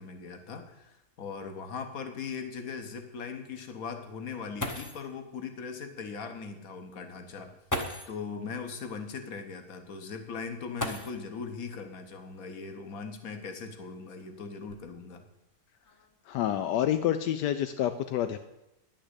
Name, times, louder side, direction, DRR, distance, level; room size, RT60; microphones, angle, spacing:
voice 1, 0.0-7.6 8.1-15.2, left 5 dB, 60° left, 7 dB, 1.6 m, -39 dB
sound 1, 0.7-0.8 1.2-1.3 1.9-2.0 4.3-4.4 4.6-5.2 6.4-6.5 7.7-8.3 10.7-11.5 12.9-13.0 13.7-15.2 15.8-16.2 16.6-17.0, left 1 dB, 15° left, 0.7 m, -37 dB
voice 2, 16.3-18.4, left 11 dB, 85° left, 9 dB, 1.2 m, -28 dB
10.0 x 6.4 x 8.1 m, 0.91 s
omnidirectional pair, 1.8 m